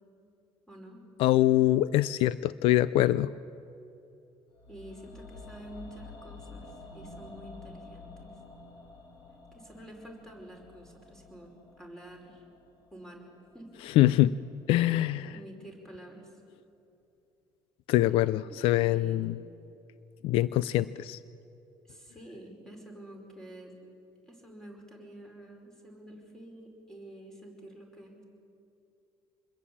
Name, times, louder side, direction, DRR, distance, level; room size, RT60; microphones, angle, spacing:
voice 1, 0.7-1.0 4.7-8.3 9.5-11.5 11.8-12.4 12.9-13.3 13.5-13.7 15.3-16.3 18.5-19.3 21.8-23.7 24.3-28.3, right 1 dB, 5° left, 1 dB, 5.1 m, -48 dB
voice 2, 1.2-3.3 14.0-14.4 14.7-15.3 17.9-19.4 20.2-21.2, left 14 dB, 75° left, 17 dB, 0.5 m, -24 dB
sound 1, 4.5-14.7 14.9-15.0, left 3 dB, 45° left, 4.7 m, -50 dB
26.5 x 21.5 x 8.6 m, 2.8 s
cardioid pair, 145°, 9 cm